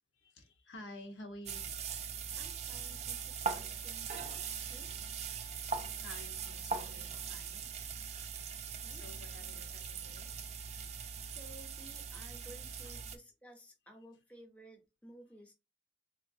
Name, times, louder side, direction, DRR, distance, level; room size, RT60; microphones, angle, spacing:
voice 1, 0.2-1.9 5.0-7.7 8.9-10.3 12.8-12.9, left 1 dB, 90° left, 0.9 m, -52 dB
sound 1, 1.5-13.2, right 6 dB, 35° right, 0.4 m, -41 dB
voice 2, 2.4-4.9 8.8-9.4 11.2-15.5, right 1 dB, 10° left, 0.6 m, -56 dB
3.8 x 2.4 x 2.6 m
head